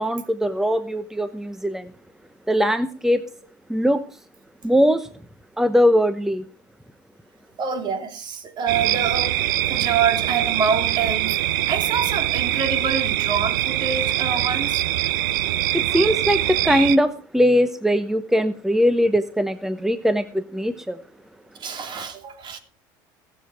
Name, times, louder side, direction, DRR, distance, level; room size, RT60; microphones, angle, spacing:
voice 1, 0.0-1.9 2.5-3.2 3.7-4.0 4.6-5.1 5.6-6.4 15.7-21.0, equal, 5° right, 0.9 m, -20 dB
voice 2, 7.6-9.4 9.7-11.4 11.7-14.8 21.6-22.6, right 6 dB, 45° right, 2.8 m, -26 dB
sound 1, 8.7-17.0, right 13 dB, 85° right, 0.9 m, -23 dB
20.0 x 7.5 x 4.8 m
supercardioid pair, 85°, 11 cm